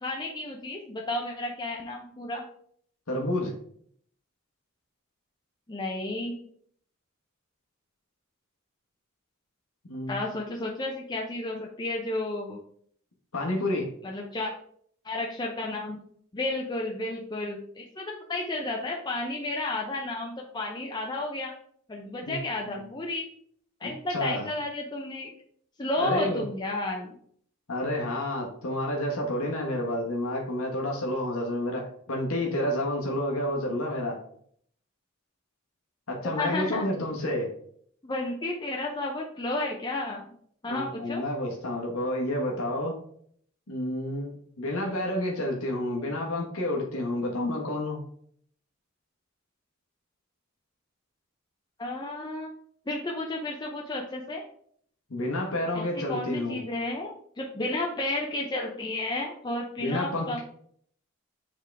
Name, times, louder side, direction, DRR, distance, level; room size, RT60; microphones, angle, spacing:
voice 1, 0.0-2.5 5.7-6.4 10.1-12.6 14.0-14.5 15.0-16.0 16.3-21.5 21.9-23.3 23.8-25.3 25.8-27.1 36.4-36.9 38.0-40.3 40.6-41.2 51.8-52.5 52.9-54.4 55.7-60.4, left 2 dB, 20° left, 0 dB, 0.6 m, -32 dB
voice 2, 3.1-3.5 9.8-10.2 13.3-13.9 22.3-22.4 22.8-22.9 23.8-24.5 26.0-26.4 27.7-34.2 36.1-37.5 40.6-43.0 43.7-48.0 55.1-56.6 59.8-60.4, left 1 dB, 85° left, 0 dB, 1.3 m, -30 dB
7.5 x 3.8 x 3.4 m, 0.63 s
head